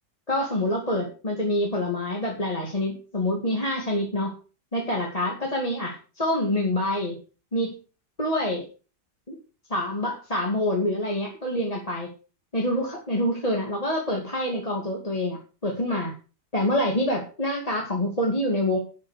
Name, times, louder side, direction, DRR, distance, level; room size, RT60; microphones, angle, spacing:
voice 1, 0.3-4.3 4.7-7.2 7.5-7.7 8.2-8.6 9.7-12.1 12.5-16.1 16.5-18.8, left 1 dB, 20° left, -1 dB, 2.6 m, -26 dB
12.0 x 6.5 x 6.8 m, 0.36 s
omnidirectional pair, 1.8 m